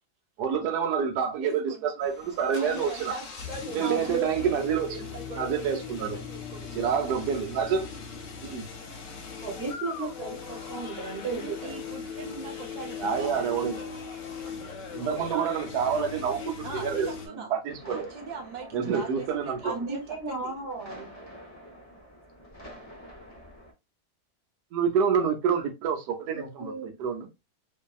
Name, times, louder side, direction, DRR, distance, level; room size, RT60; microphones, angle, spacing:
voice 1, 0.4-3.1 3.7-5.0 5.4-6.2 6.7-7.9 8.4-8.7 13.0-13.9 14.4-14.5 14.9-17.1 17.5-18.1 18.7-19.6 24.7-27.3, right 7 dB, 85° right, 1.2 m, -28 dB
voice 2, 1.4-2.0 2.6-6.8 11.3-13.5 16.6-17.5 17.8-20.5, right 3 dB, 65° right, 0.4 m, -41 dB
sound 1, 2.0-17.3, left 6 dB, 65° left, 0.9 m, -39 dB
voice 3, 3.8-4.5 9.4-10.4 10.7-11.7 13.6-13.7 18.8-19.0 19.6-21.1 26.3-26.9, right 4 dB, 45° right, 1.0 m, -34 dB
sound 2, 17.7-23.7, equal, 25° left, 0.4 m, -47 dB
2.6 x 2.6 x 2.3 m
omnidirectional pair, 1.7 m